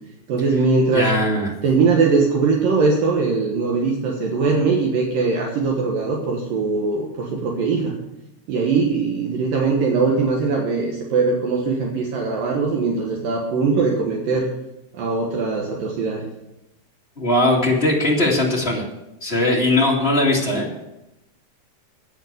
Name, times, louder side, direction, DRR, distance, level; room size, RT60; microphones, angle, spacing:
voice 1, 0.3-1.1 1.6-8.0 8.5-14.5 14.9-16.2, right 4 dB, 65° right, 0 dB, 2.9 m, -21 dB
voice 2, 0.9-1.5 17.2-18.8 19.2-20.6, left 1 dB, 25° left, -3 dB, 1.4 m, -19 dB
10.0 x 9.4 x 6.8 m, 0.91 s
omnidirectional pair, 4.6 m